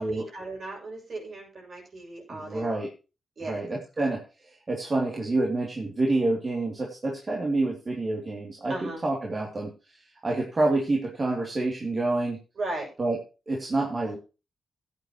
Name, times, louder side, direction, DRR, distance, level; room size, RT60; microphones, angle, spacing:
voice 1, 0.0-2.8 3.4-3.7 8.7-9.0 12.6-12.9, right 2 dB, 55° right, 0 dB, 7.2 m, -36 dB
voice 2, 2.3-2.9 3.4-9.7 10.2-12.4 13.0-13.2 13.5-14.2, right 2 dB, 40° right, -1 dB, 2.9 m, -28 dB
16.0 x 9.6 x 3.1 m, 0.32 s
cardioid pair, 85°, 0 cm